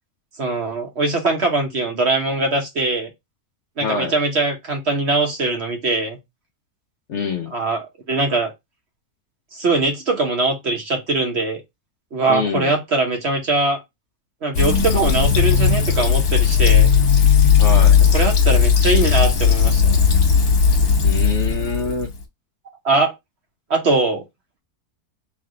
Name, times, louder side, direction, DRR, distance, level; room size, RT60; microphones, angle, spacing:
voice 1, 0.4-3.1 3.8-6.2 7.5-8.5 9.5-11.6 12.1-13.8 14.4-16.9 18.1-20.0 22.8-23.1 23.7-24.2, right 3 dB, 50° right, 1.1 m, -21 dB
voice 2, 3.8-4.1 7.1-7.5 12.3-12.7 17.6-18.0 21.0-22.1, left 4 dB, 60° left, 0.8 m, -25 dB
Fill (with liquid), 14.5-22.2, left 7 dB, 80° left, 1.6 m, -16 dB
3.4 x 3.2 x 3.8 m
omnidirectional pair, 1.6 m